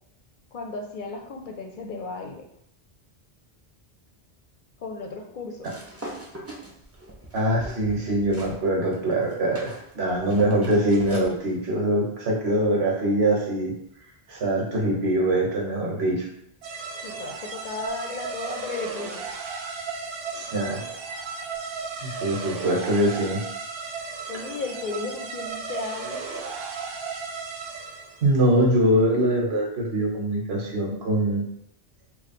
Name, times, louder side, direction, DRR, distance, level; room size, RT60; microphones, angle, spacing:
voice 1, 0.5-2.4 4.8-5.7 17.0-19.3 24.3-26.2, left 4 dB, 60° left, 3 dB, 0.6 m, -34 dB
sound 1, 5.6-8.6 8.9-11.3, right 1 dB, 20° right, 0.4 m, -40 dB
voice 2, 7.3-13.7 14.3-16.3 20.3-20.8 22.0-23.4 28.2-31.4, right 1 dB, 90° right, -1 dB, 1.2 m, -23 dB
sound 2, 16.6-28.3, right 4 dB, 75° right, 0.8 m, -35 dB
3.1 x 2.3 x 4.1 m, 0.72 s
omnidirectional pair, 1.0 m